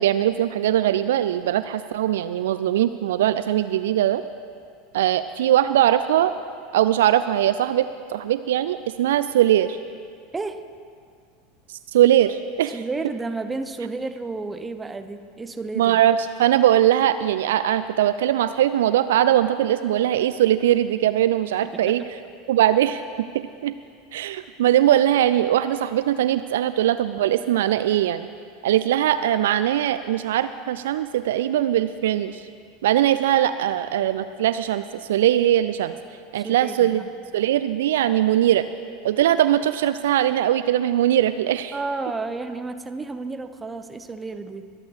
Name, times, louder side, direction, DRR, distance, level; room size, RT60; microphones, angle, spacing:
voice 1, 0.0-4.2 4.9-6.3 6.7-9.8 11.7-12.8 15.8-22.0 22.5-23.0 23.6-23.7 24.1-28.3 28.6-32.4 32.8-35.9 36.3-37.0 37.3-38.6 39.0-41.7, right 12 dB, 60° right, 12 dB, 0.3 m, -21 dB
voice 2, 10.3-10.7 12.7-16.0 21.7-22.1 36.3-37.1 41.7-44.7, right 3 dB, 15° right, 9 dB, 0.8 m, -32 dB
22.0 x 8.6 x 4.9 m, 2.2 s
figure-of-eight pair, 80°, 0 cm